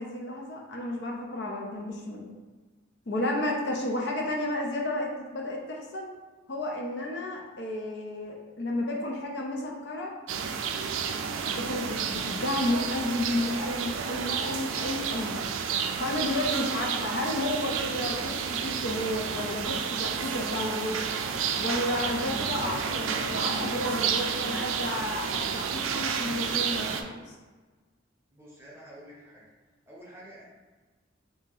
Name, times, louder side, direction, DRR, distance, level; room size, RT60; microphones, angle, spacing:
voice 1, 0.0-2.3 3.1-6.1 6.5-10.1 11.4-15.4 16.0-21.0 21.5-27.4, left 1 dB, 55° left, -1 dB, 0.5 m, -32 dB
sound 1, 10.3-27.0, right 6 dB, 80° right, 0.3 m, -31 dB
voice 2, 28.3-29.4 29.9-30.4, right 1 dB, 10° right, -6 dB, 0.8 m, -48 dB
2.8 x 2.7 x 3.8 m, 1.3 s
head